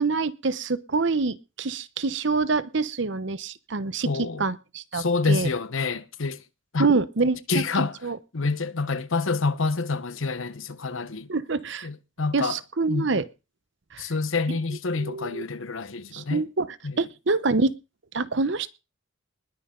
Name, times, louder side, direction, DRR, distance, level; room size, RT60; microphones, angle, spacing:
voice 1, 0.0-4.1 4.4-5.5 6.8-7.4 8.0-8.2 11.3-11.9 12.3-13.2 13.9-14.1 14.5-14.6 15.0-15.4 16.1-16.7 17.0-17.7 18.1-18.7, right 3 dB, 60° right, 0.8 m, -26 dB
voice 2, 4.0-4.4 4.9-6.4 6.7-6.9 7.5-8.0 8.3-11.3 11.8-12.6 12.9-13.1 14.0-16.4 16.8-17.1, left 4 dB, 70° left, 1.0 m, -27 dB
20.5 x 9.6 x 3.8 m
head